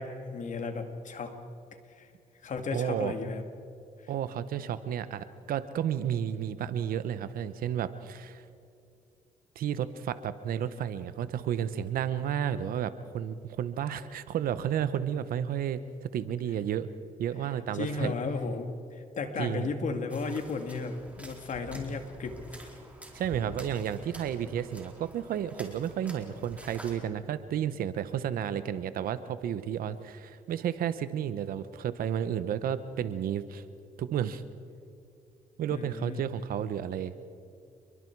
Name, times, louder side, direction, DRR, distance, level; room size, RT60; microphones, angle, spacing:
voice 1, 0.0-1.4 2.0-2.1 2.4-3.4 4.0-4.1 17.7-22.4 35.7-36.2, left 4 dB, 60° left, 6 dB, 2.3 m, -34 dB
voice 2, 2.7-3.1 4.1-8.4 9.5-15.8 16.1-16.9 17.2-18.1 19.4-19.7 23.1-33.6 34.0-34.4 35.6-37.1, right 9 dB, 85° right, 13 dB, 1.0 m, -32 dB
sound 1, 20.1-26.9, right 1 dB, 10° right, 4.3 m, -47 dB
29.5 x 22.5 x 4.7 m, 2.5 s
cardioid pair, 85°, 15 cm